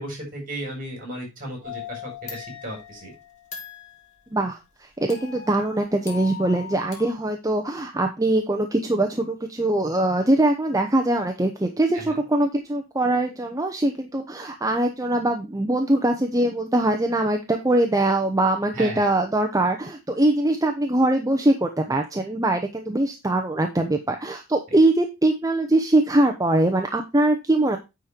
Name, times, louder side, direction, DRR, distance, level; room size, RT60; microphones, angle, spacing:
voice 1, 0.0-3.1 11.9-12.2 18.7-19.1 24.7-24.8, right 1 dB, 40° right, 1 dB, 5.5 m, -35 dB
sound 1, 1.6-4.1 5.1-7.1, left 7 dB, 35° left, 2.8 m, -39 dB
voice 2, 5.0-27.8, right 1 dB, 15° right, 4 dB, 0.8 m, -22 dB
9.7 x 4.5 x 5.0 m, 0.25 s
head